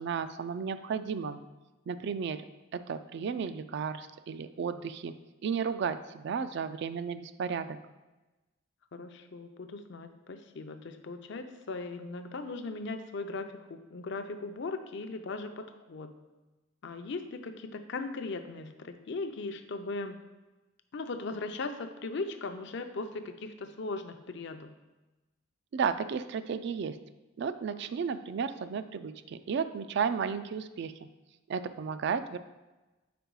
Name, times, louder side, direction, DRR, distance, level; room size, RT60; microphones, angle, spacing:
voice 1, 0.0-1.4 1.9-2.4 2.7-5.1 5.4-7.8 25.7-27.0 27.4-30.9 31.5-32.4, right 6 dB, 60° right, 11 dB, 0.3 m, -33 dB
voice 2, 8.9-16.1 16.8-20.2 20.9-24.8, left 3 dB, 65° left, 7 dB, 0.5 m, -38 dB
5.1 x 4.4 x 4.6 m, 1.1 s
head